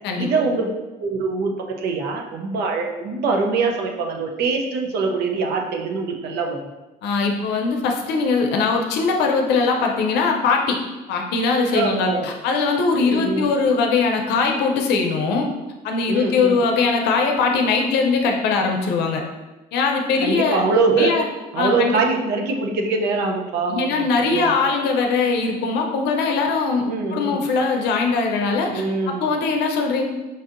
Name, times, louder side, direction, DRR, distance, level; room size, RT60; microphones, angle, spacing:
voice 1, 0.1-0.7 1.0-6.6 11.7-12.3 13.0-13.5 16.1-16.6 20.2-21.2 21.5-24.6 26.9-27.4 28.7-29.3, right 4 dB, 75° right, 2 dB, 0.6 m, -23 dB
voice 2, 7.0-10.8 11.1-15.5 15.8-19.2 19.7-20.6 21.0-21.3 21.6-22.0 23.7-30.0, left 4 dB, 85° left, 2 dB, 0.6 m, -21 dB
5.3 x 2.6 x 2.5 m, 1.1 s
cardioid pair, 110°, 17 cm